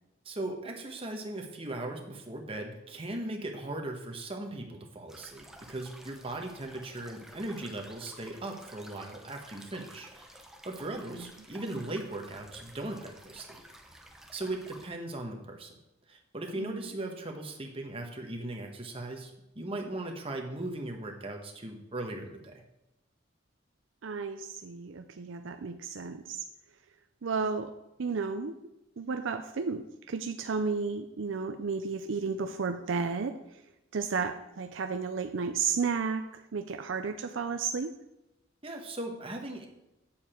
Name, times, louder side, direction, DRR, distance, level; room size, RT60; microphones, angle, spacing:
voice 1, 0.2-13.6 14.3-15.7 16.1-22.6 38.6-39.7, right 2 dB, 30° right, 2 dB, 1.2 m, -38 dB
sound 1, 5.1-14.9, right 1 dB, ahead, 0.8 m, -52 dB
voice 2, 16.6-16.9 24.0-26.4 27.2-27.7 28.0-28.5 29.0-33.4 33.9-37.9, right 5 dB, 65° right, 7 dB, 0.5 m, -33 dB
8.9 x 7.1 x 4.4 m, 0.93 s
head